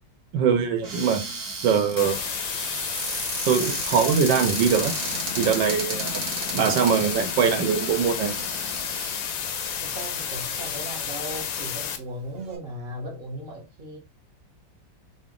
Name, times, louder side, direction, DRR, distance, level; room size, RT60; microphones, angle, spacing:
voice 1, 0.3-1.2 1.6-2.3 3.5-4.9 5.4-6.2 6.5-8.3, right 7 dB, 85° right, 1.4 m, -22 dB
Cupboard open or close, 0.8-11.2 11.9-12.0 12.2-12.6, right 3 dB, 60° right, 1.7 m, -35 dB
sound 1, 2.0-12.0, left 8 dB, 70° left, 0.8 m, -31 dB
voice 2, 9.8-14.0, right 1 dB, 40° right, 0.8 m, -37 dB
3.9 x 2.1 x 3.6 m
omnidirectional pair, 2.0 m